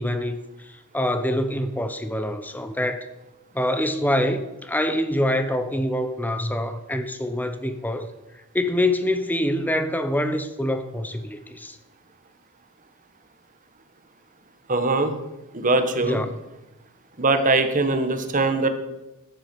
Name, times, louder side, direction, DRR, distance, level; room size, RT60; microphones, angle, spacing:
voice 1, 0.0-3.1 3.5-8.1 8.5-11.8 16.0-16.4, left 1 dB, 10° left, 8 dB, 0.9 m, -25 dB
voice 2, 14.7-15.2 15.5-16.2 17.2-18.7, right 3 dB, 35° right, 8 dB, 1.3 m, -21 dB
13.5 x 9.6 x 5.3 m, 0.98 s
head